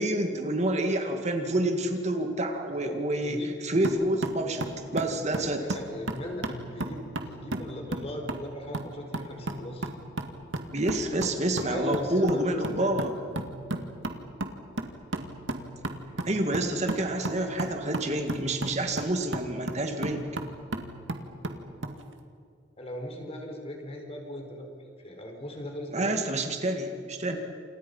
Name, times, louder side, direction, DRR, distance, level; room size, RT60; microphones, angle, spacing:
voice 1, 0.0-5.6 10.7-13.2 16.2-20.2 25.9-27.4, right 1 dB, 35° right, 5 dB, 2.1 m, -28 dB
voice 2, 2.8-3.5 5.3-9.9 11.6-13.2 22.8-26.2, left 1 dB, 30° left, 2 dB, 4.7 m, -38 dB
sound 1, 3.8-22.0, right 1 dB, 85° right, 2.2 m, -36 dB
29.0 x 28.0 x 5.6 m, 2.4 s
head